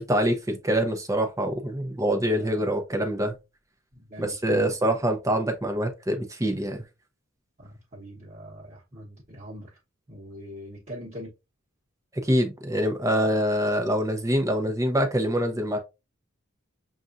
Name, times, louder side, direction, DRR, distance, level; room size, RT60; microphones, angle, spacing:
voice 1, 0.0-3.4 4.2-6.8 12.1-15.8, equal, 15° right, 0.6 m, -25 dB
voice 2, 3.9-5.0 7.6-9.7 10.1-11.3, equal, 35° right, 1.1 m, -42 dB
6.6 x 2.4 x 2.5 m
head